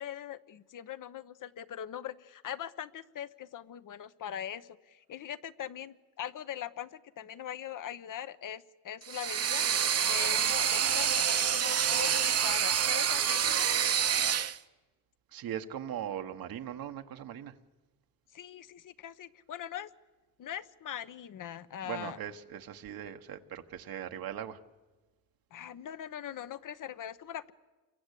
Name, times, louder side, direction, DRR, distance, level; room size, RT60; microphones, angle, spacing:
voice 1, 0.0-13.7 18.3-19.9 20.4-22.2 25.5-27.5, left 10 dB, 60° left, 13 dB, 1.0 m, -41 dB
sound 1, 9.0-14.6, right 8 dB, 45° right, 0.8 m, -27 dB
voice 2, 15.3-17.5 21.8-24.6, right 10 dB, 75° right, 6 dB, 1.3 m, -39 dB
28.0 x 22.5 x 8.4 m, 1.2 s
cardioid pair, 95°, 35 cm